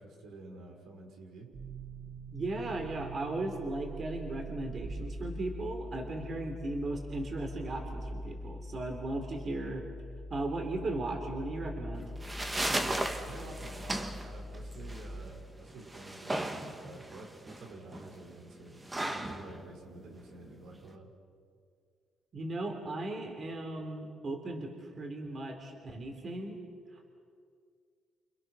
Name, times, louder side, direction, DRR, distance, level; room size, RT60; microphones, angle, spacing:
voice 1, 0.0-1.5 12.7-21.1, right 2 dB, 85° right, 1 dB, 5.5 m, -49 dB
sound 1, 1.5-15.2, equal, 60° right, 7.4 m, -43 dB
voice 2, 2.3-9.8 10.3-12.1 22.3-27.2, right 2 dB, 40° right, 3 dB, 3.5 m, -37 dB
sound 2, 11.9-20.9, right 1 dB, 15° right, 1.8 m, -37 dB
29.0 x 28.0 x 6.3 m, 2.2 s
cardioid pair, 120°, 0 cm